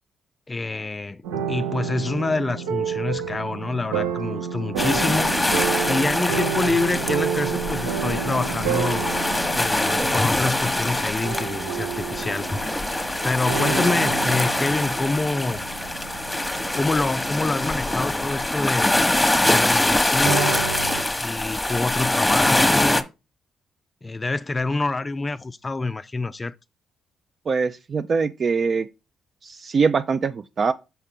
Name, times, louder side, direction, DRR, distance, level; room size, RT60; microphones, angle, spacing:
voice 1, 0.5-1.2 1.5-5.3 5.9-9.1 9.5-12.5 13.2-15.6 16.5-18.9 19.5-20.6 21.2-23.0 24.0-26.5, left 3 dB, 30° left, 0.3 m, -26 dB
sound 1, 1.2-21.0, right 7 dB, 85° right, 0.9 m, -30 dB
sound 2, 4.8-23.0, left 1 dB, 15° left, 1.0 m, -24 dB
voice 2, 27.5-28.9 29.4-30.7, right 5 dB, 50° right, 0.4 m, -23 dB
5.6 x 5.5 x 3.6 m
hypercardioid pair, 50°, 0 cm